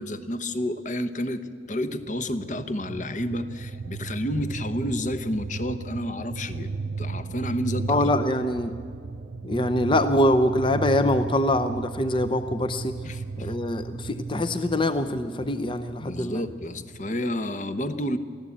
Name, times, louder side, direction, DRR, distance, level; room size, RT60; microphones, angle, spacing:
voice 1, 0.0-8.1 13.0-13.6 16.0-18.2, left 1 dB, 45° left, 11 dB, 1.0 m, -30 dB
sound 1, 1.8-17.1, right 4 dB, 85° right, 0.6 m, -35 dB
voice 2, 7.9-8.7 9.4-12.9 13.4-16.4, left 1 dB, 25° left, 9 dB, 0.6 m, -24 dB
23.5 x 15.0 x 8.7 m, 2.1 s
head